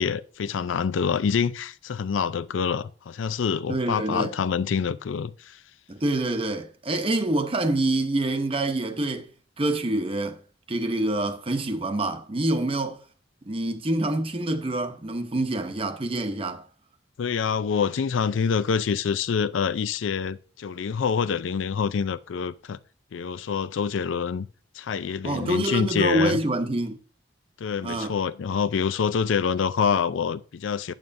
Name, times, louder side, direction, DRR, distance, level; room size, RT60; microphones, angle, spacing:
voice 1, 0.0-5.6 17.2-22.8 23.1-24.5 24.7-26.4 27.6-30.9, left 6 dB, 85° left, 0.4 m, -26 dB
voice 2, 3.7-4.3 5.9-9.3 9.6-10.4 10.7-13.0 13.5-16.6 25.2-27.0 27.8-28.1, right 2 dB, 30° right, 0.8 m, -26 dB
8.9 x 7.7 x 2.6 m
head